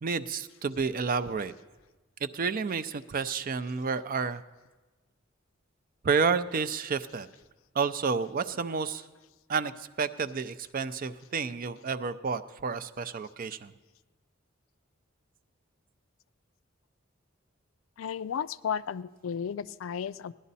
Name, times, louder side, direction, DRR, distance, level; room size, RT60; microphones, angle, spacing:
voice 1, 0.0-1.5 2.2-4.4 6.0-7.3 7.8-9.0 9.5-9.7 10.0-13.7, right 5 dB, 45° right, 11 dB, 0.4 m, -30 dB
voice 2, 18.0-20.3, left 7 dB, 80° left, 16 dB, 0.4 m, -33 dB
16.5 x 11.0 x 4.1 m, 1.2 s
head